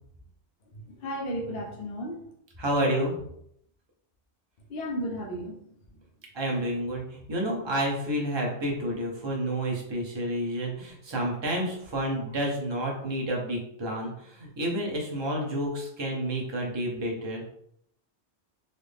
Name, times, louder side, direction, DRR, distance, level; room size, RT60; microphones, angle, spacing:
voice 1, 0.7-2.2 4.7-5.6 5.9-6.1 13.0-13.1, equal, 60° left, 0 dB, 0.8 m, -34 dB
voice 2, 2.6-3.2 6.3-17.4, right 1 dB, 25° right, -1 dB, 0.7 m, -30 dB
4.1 x 2.1 x 3.4 m, 0.72 s
omnidirectional pair, 1.2 m